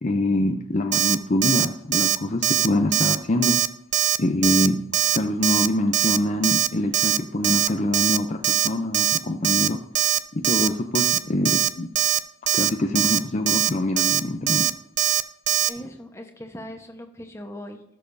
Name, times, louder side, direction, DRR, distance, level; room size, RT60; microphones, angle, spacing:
voice 1, 0.0-3.6 4.2-4.8 5.1-9.8 10.3-11.9 12.5-14.7, left 1 dB, 35° left, 4 dB, 0.6 m, -24 dB
Alarm, 0.9-1.2 1.4-1.7 1.9-2.2 2.4-2.7 2.9-3.2 3.4-3.7 3.9-4.2 4.4-4.7 4.9-5.2 5.4-5.7 5.9-6.2 6.4-6.7 6.9-7.2 7.4-7.7 7.9-8.2 8.4-8.7 8.9-9.2 9.4-9.7 9.9-10.2 10.4-10.7 10.9-11.2 11.4-11.7 12.0-12.2 12.5-12.7 13.0-13.2 13.5-13.7 14.0-14.2 14.5-14.7 15.0-15.2 15.5-15.7, right 11 dB, 35° right, 0.4 m, -21 dB
voice 2, 15.7-17.8, equal, 15° left, 4 dB, 1.1 m, -39 dB
18.0 x 6.7 x 2.7 m, 0.82 s
head